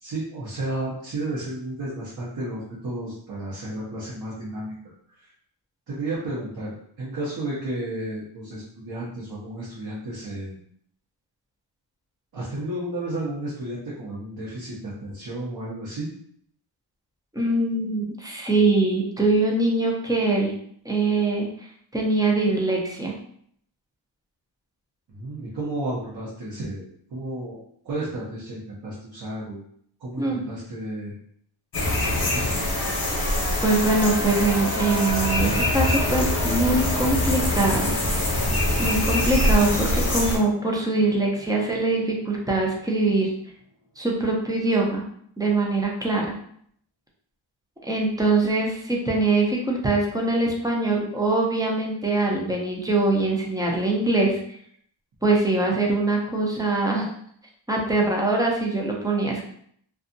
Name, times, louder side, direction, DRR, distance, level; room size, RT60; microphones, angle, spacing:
voice 1, 0.0-4.7 5.9-10.6 12.3-16.1 25.1-26.8 27.1-27.6 27.8-29.6 30.0-31.1 32.3-32.8, right 1 dB, 50° right, -7 dB, 0.7 m, -32 dB
voice 2, 17.3-20.5 20.8-21.5 21.9-23.1 30.2-30.4 33.6-37.9 38.8-43.3 44.0-45.0 45.4-46.3 47.8-54.4 55.2-57.1 57.7-59.4, right 2 dB, 10° right, -2 dB, 0.4 m, -23 dB
sound 1, 31.7-40.4, left 1 dB, 50° left, 0.8 m, -24 dB
sound 2, 32.7-42.7 42.9-43.0, right 2 dB, 85° right, 0.9 m, -37 dB
2.6 x 2.3 x 2.5 m, 0.65 s
wide cardioid pair, 160°, 47 cm